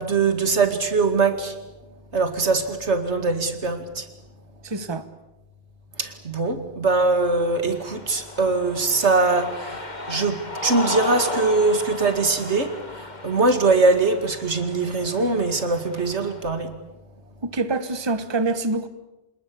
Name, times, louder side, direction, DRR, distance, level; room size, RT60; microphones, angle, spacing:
voice 1, 0.0-1.6 2.1-4.1 6.0-16.7, right 3 dB, 90° right, 8 dB, 2.6 m, -22 dB
voice 2, 4.6-5.1 17.4-18.9, right 3 dB, 25° right, 12 dB, 1.3 m, -25 dB
Cheering, 7.3-16.5, left 2 dB, 40° left, 2.1 m, -35 dB
26.5 x 21.0 x 8.6 m, 1.0 s
omnidirectional pair, 1.1 m